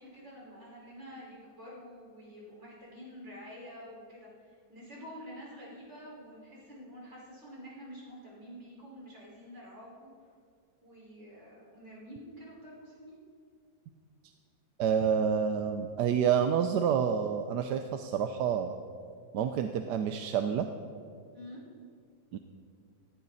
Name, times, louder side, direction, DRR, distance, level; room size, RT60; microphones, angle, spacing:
voice 1, 0.0-10.1 10.8-13.2 21.3-21.6, equal, 40° right, -5 dB, 5.3 m, -48 dB
voice 2, 14.8-18.8 19.3-20.7 22.3-22.4, right 7 dB, 80° right, 7 dB, 1.3 m, -28 dB
17.0 x 17.0 x 4.1 m, 2.2 s
omnidirectional pair, 1.8 m